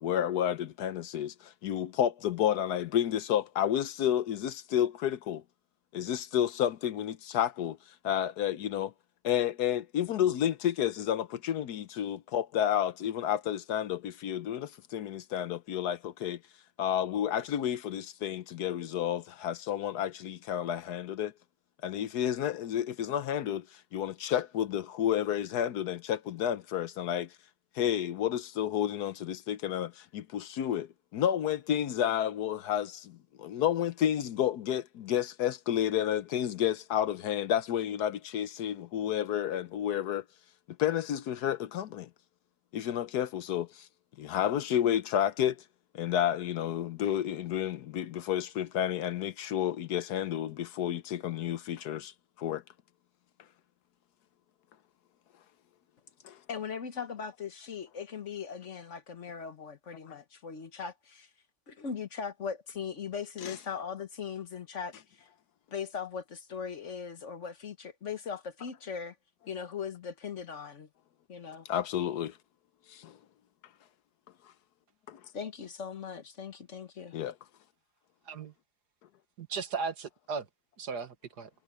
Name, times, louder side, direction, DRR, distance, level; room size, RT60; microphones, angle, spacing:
voice 1, 0.0-5.4 5.9-7.8 8.0-8.9 9.2-16.4 16.8-21.3 21.8-27.3 27.7-40.2 40.8-42.1 42.7-43.9 44.2-45.6 45.9-52.1 52.4-52.6 56.2-56.4 63.4-63.6 71.7-72.4 72.9-73.2 75.1-75.2 77.1-77.3, left 10 dB, 70° left, 1.3 m, -31 dB
voice 2, 56.5-61.3 61.7-65.3 65.7-69.1 69.5-70.9 71.3-71.6 75.3-77.2, left 6 dB, 50° left, 1.4 m, -39 dB
voice 3, 79.4-80.5 80.8-81.5, right 5 dB, 70° right, 2.1 m, -36 dB
omnidirectional pair, 1.8 m